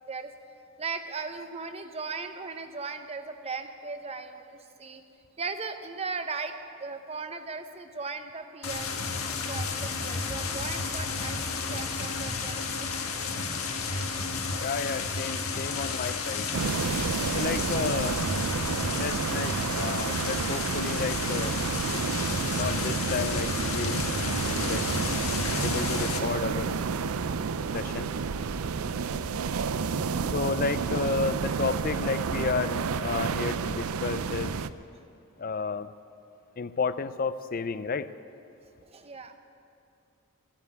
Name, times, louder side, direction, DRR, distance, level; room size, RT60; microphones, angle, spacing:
voice 1, 0.8-5.0 5.4-8.9 9.5-12.9 13.3-13.4 38.8-39.3, right 4 dB, 30° right, 8 dB, 0.8 m, -38 dB
sound 1, 8.6-26.2, left 4 dB, 85° left, 1.5 m, -32 dB
sound 2, 10.3-13.4, left 1 dB, 15° left, 2.1 m, -48 dB
voice 2, 14.6-16.5 17.3-18.2 19.0-21.6 22.5-24.2 24.4-24.8 25.6-26.8 27.7-28.1 30.3-34.5 35.4-35.9 36.6-38.1, left 4 dB, 40° left, 14 dB, 0.5 m, -32 dB
sound 3, 16.5-34.7, right 5 dB, 85° right, 0.5 m, -30 dB
15.0 x 10.0 x 8.1 m, 2.6 s
head